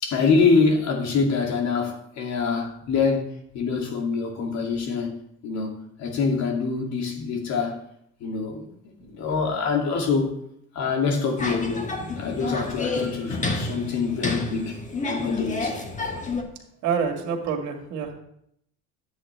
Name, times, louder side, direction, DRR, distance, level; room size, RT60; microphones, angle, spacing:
voice 1, 0.0-3.2 3.5-5.2 5.4-7.8 8.2-8.7 9.0-10.3 10.7-15.8, left 4 dB, 60° left, 2.4 m, -25 dB
sound 1, 11.4-16.4, left 3 dB, 25° left, 1.4 m, -30 dB
voice 2, 16.8-18.1, right 6 dB, 65° right, 2.0 m, -27 dB
10.0 x 8.2 x 3.2 m
supercardioid pair, 100°, 31 cm